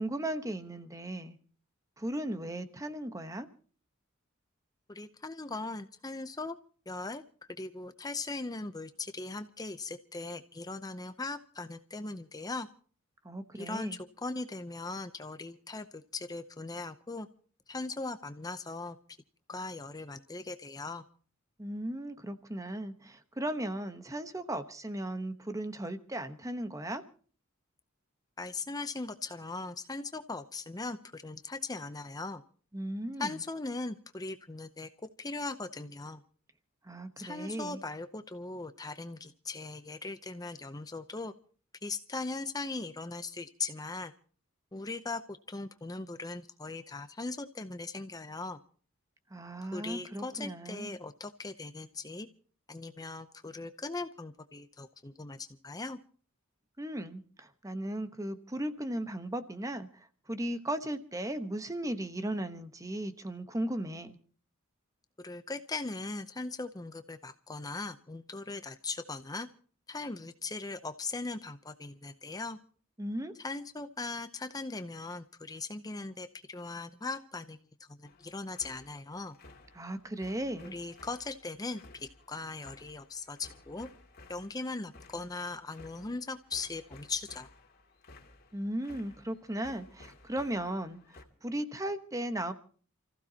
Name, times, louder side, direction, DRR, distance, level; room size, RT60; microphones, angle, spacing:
voice 1, 0.0-1.4 2.0-3.5 13.2-14.0 21.6-27.0 32.7-33.4 36.8-37.8 49.3-51.0 56.8-64.2 73.0-73.3 79.7-80.7 88.5-92.5, right 1 dB, 15° right, 10 dB, 1.1 m, -36 dB
voice 2, 4.9-6.6 6.9-7.2 7.6-12.7 13.5-17.3 17.7-19.0 19.5-21.0 28.4-32.4 33.2-34.9 35.2-36.2 37.2-41.3 41.8-44.1 44.7-48.6 49.7-52.3 52.7-56.0 65.2-69.5 69.9-72.6 73.4-77.6 78.0-79.4 80.6-83.9 84.3-87.5, left 3 dB, 20° left, 10 dB, 0.6 m, -39 dB
sound 1, 78.0-91.2, left 2 dB, 50° left, 2.5 m, -56 dB
29.5 x 15.0 x 2.9 m, 0.43 s
head